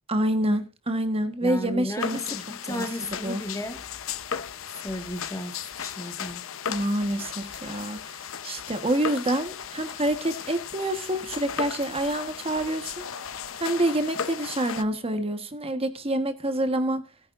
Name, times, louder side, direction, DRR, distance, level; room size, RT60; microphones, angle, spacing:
voice 1, 0.1-2.3 2.7-3.4 6.7-13.2 13.6-17.0, right 1 dB, 30° right, 1.3 m, -27 dB
voice 2, 1.4-3.8 4.7-6.5, left 1 dB, 15° left, 1.6 m, -34 dB
sound 1, 2.0-14.8, left 7 dB, 80° left, 0.9 m, -36 dB
18.0 x 9.4 x 2.5 m
head